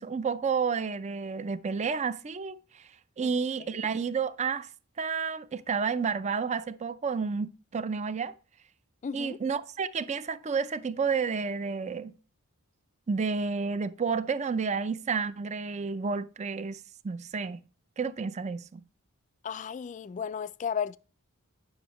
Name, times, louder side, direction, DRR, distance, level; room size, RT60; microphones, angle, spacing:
voice 1, 0.0-2.9 3.2-4.7 5.0-8.3 9.1-12.1 13.1-16.8 17.0-17.6 18.0-18.8, right 5 dB, 30° right, 0.4 m, -30 dB
voice 2, 9.0-9.4 19.4-21.0, left 7 dB, 35° left, 0.3 m, -34 dB
9.6 x 6.2 x 3.0 m
head